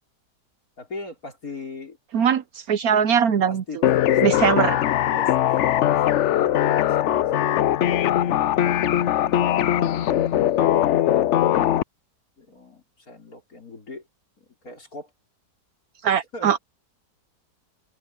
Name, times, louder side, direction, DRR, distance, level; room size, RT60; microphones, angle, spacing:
voice 1, 0.8-2.0 3.5-9.9 10.5-11.8 12.4-14.1 14.4-15.1 16.3-16.6, left 3 dB, 55° left, 5.4 m, -41 dB
voice 2, 2.1-3.6 4.2-4.8 16.0-16.6, right 8 dB, 65° right, 1.2 m, -21 dB
sound 1, 3.8-11.8, left 11 dB, 75° left, 0.6 m, -20 dB
omnidirectional pair, 1.9 m